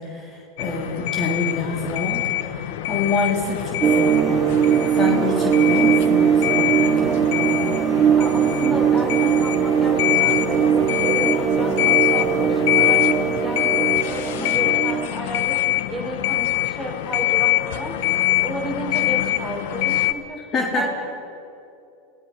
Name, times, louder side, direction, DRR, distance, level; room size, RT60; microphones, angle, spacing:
voice 1, 0.0-4.7 5.0-7.8 20.5-20.9, left 3 dB, 35° left, 0 dB, 4.0 m, -27 dB
sound 1, 0.6-20.1, left 15 dB, 70° left, 1.3 m, -24 dB
sound 2, 3.8-15.1, right 9 dB, 30° right, 0.9 m, -20 dB
voice 2, 8.2-17.9 18.3-20.4 20.7-20.9, equal, 5° left, 0 dB, 5.4 m, -32 dB
29.0 x 18.0 x 5.8 m, 2.6 s
hypercardioid pair, 100°, 0 cm